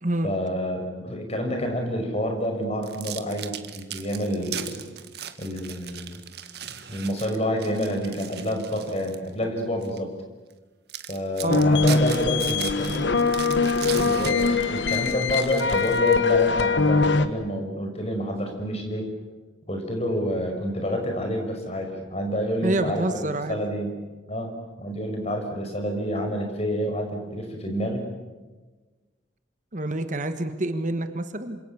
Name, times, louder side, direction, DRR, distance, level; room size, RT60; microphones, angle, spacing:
voice 1, 0.2-4.8 5.4-6.2 6.7-10.1 11.1-13.2 13.9-19.1 19.7-23.9 24.3-24.5 24.8-28.1, equal, 35° left, 3 dB, 6.0 m, -28 dB
sound 1, 2.8-9.3 9.8-10.0 10.5-10.6 10.9-16.4, right 9 dB, 60° right, 1.8 m, -38 dB
sound 2, 11.5-17.3, left 4 dB, 85° left, 1.5 m, -22 dB
voice 2, 22.6-23.6 29.7-31.6, right 1 dB, 45° right, 9 dB, 1.5 m, -27 dB
27.5 x 26.5 x 7.1 m, 1.3 s
head